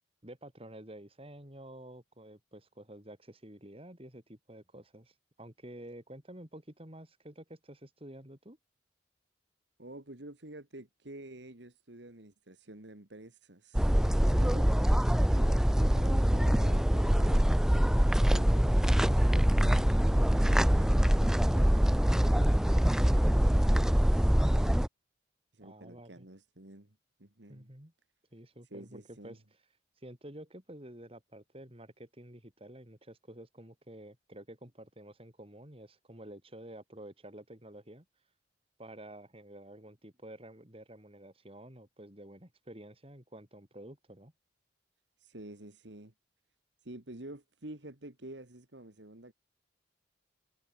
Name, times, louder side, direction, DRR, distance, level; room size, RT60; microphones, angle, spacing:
voice 1, 0.2-8.6 25.6-26.3 27.5-27.9 28.3-29.4 30.0-38.0 38.8-44.3, right 1 dB, 30° right, 4.4 m, -50 dB
voice 2, 9.8-13.9 14.3-17.5 18.2-21.8 22.9-24.3 25.5-27.7 28.7-29.4 45.2-46.1 46.8-49.3, right 1 dB, 65° right, 2.3 m, -49 dB
sound 1, 13.7-24.9, equal, 5° right, 0.3 m, -24 dB
head